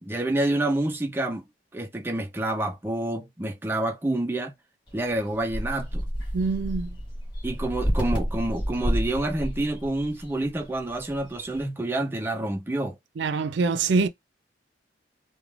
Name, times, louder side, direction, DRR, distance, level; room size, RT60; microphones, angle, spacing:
voice 1, 0.0-1.4 1.7-4.5 4.9-6.1 7.4-13.0, right 1 dB, 10° right, 0.4 m, -28 dB
sound 1, 4.9-11.7, equal, 25° left, 1.2 m, -31 dB
voice 2, 6.3-7.0 13.2-14.1, right 4 dB, 75° right, 0.4 m, -24 dB
3.2 x 2.2 x 2.4 m
head